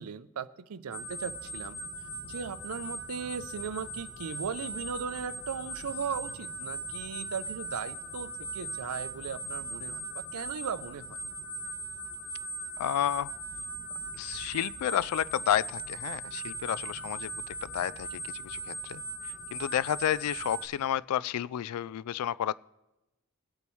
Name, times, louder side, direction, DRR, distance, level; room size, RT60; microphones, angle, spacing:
voice 1, 0.0-1.8 2.2-11.2, right 6 dB, 80° right, 0.5 m, -38 dB
sound 1, 0.9-20.7, right 1 dB, 60° left, 1.8 m, -39 dB
voice 2, 12.8-13.3 14.2-17.3 17.6-19.0 19.5-22.5, left 10 dB, 85° left, 0.3 m, -31 dB
21.5 x 8.4 x 3.1 m
head